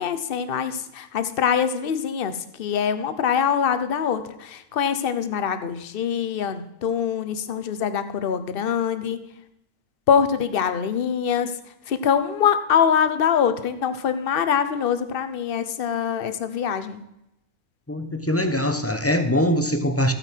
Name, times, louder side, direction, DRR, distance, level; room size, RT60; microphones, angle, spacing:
voice 1, 0.0-9.2 10.1-11.5 11.9-17.0, left 7 dB, 50° left, 1.0 m, -24 dB
voice 2, 17.9-20.1, equal, 15° left, 0.7 m, -22 dB
14.0 x 9.0 x 4.5 m
omnidirectional pair, 1.4 m